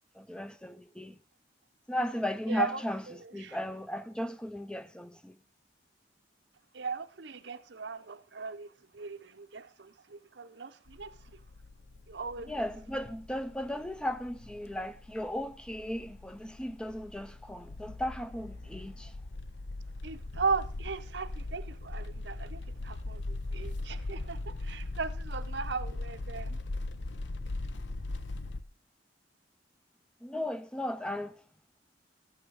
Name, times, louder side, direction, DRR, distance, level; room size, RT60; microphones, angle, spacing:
voice 1, 0.1-1.2 1.9-5.4 12.5-19.1 30.2-31.4, left 1 dB, 5° left, 0.4 m, -36 dB
voice 2, 2.5-2.8 3.1-3.6 6.7-11.4 12.1-12.5 20.0-26.6, right 5 dB, 70° right, 0.7 m, -37 dB
sound 1, 10.9-28.6, left 2 dB, 75° left, 0.8 m, -40 dB
13.0 x 8.7 x 4.8 m
head